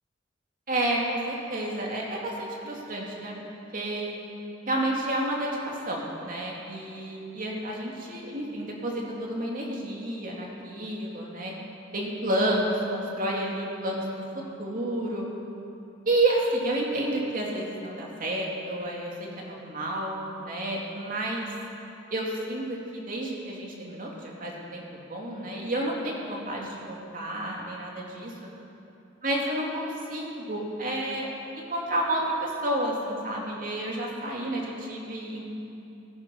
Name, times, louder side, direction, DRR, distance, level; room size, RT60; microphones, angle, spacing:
voice 1, 0.7-3.3 3.7-4.2 4.7-11.5 11.9-14.0 14.3-15.3 16.1-21.5 22.1-28.3 29.2-31.3 31.6-35.5, right 1 dB, 45° right, -2 dB, 2.6 m, -30 dB
19.5 x 10.5 x 5.4 m, 2.8 s
head